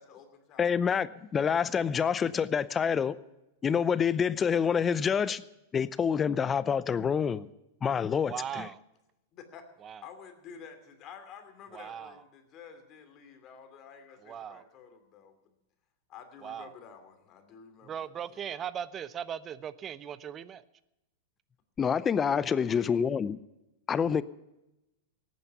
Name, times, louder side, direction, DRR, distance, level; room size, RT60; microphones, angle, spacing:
voice 1, 0.0-0.7 9.3-9.7 10.0-15.5 16.1-18.4 22.2-23.1, left 6 dB, 40° left, 7 dB, 2.7 m, -50 dB
voice 2, 0.6-3.2 3.6-5.4 5.7-7.5 7.8-8.7 21.8-23.4 23.9-24.2, left 7 dB, 25° left, 18 dB, 0.6 m, -27 dB
voice 3, 8.3-8.8 9.8-10.0 11.7-12.1 14.2-14.6 16.4-16.7 17.8-20.6, right 8 dB, 30° right, 16 dB, 0.8 m, -38 dB
17.5 x 9.3 x 6.9 m, 0.93 s
hypercardioid pair, 105°, 0 cm